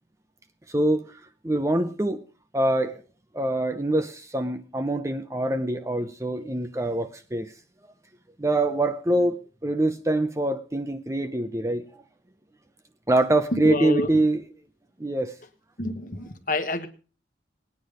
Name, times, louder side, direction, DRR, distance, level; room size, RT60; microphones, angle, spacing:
voice 1, 0.7-1.2 1.4-2.2 2.5-3.0 3.3-7.5 8.4-11.9 13.1-14.4 15.0-15.4, right 1 dB, 15° right, 0.7 m, -24 dB
voice 2, 13.6-14.1 15.8-16.9, left 2 dB, 45° left, 1.3 m, -28 dB
19.0 x 9.6 x 5.1 m
head